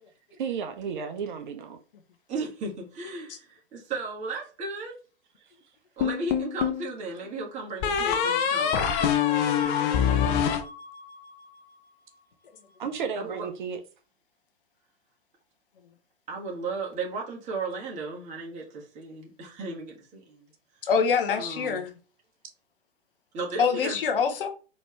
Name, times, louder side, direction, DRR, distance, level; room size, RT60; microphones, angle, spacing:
voice 1, 0.4-1.8 12.8-13.8, right 6 dB, 50° right, 0.7 m, -33 dB
voice 2, 2.3-4.9 6.0-9.5 13.1-13.5 16.3-20.5 21.4-21.8 23.3-24.0, right 3 dB, 20° right, 1.6 m, -35 dB
sound 1, 6.0-6.9 7.8-11.3, left 8 dB, 25° left, 0.5 m, -25 dB
voice 3, 20.8-22.0 23.6-24.5, left 6 dB, 55° left, 0.9 m, -25 dB
4.2 x 3.0 x 3.3 m
figure-of-eight pair, 105°, 32 cm